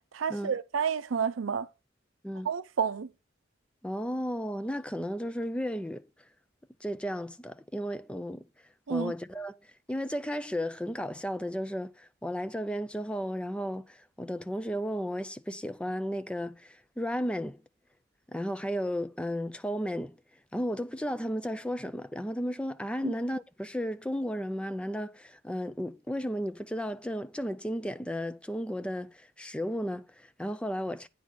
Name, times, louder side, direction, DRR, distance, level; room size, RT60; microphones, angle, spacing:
voice 1, 0.1-1.7 2.4-3.1 8.9-9.1 23.0-23.1, right 6 dB, 80° right, 0.5 m, -30 dB
voice 2, 3.8-6.1 6.8-8.5 8.9-9.6 9.9-17.6 18.3-20.2 20.5-31.1, equal, 5° left, 0.4 m, -34 dB
9.3 x 4.2 x 6.1 m
head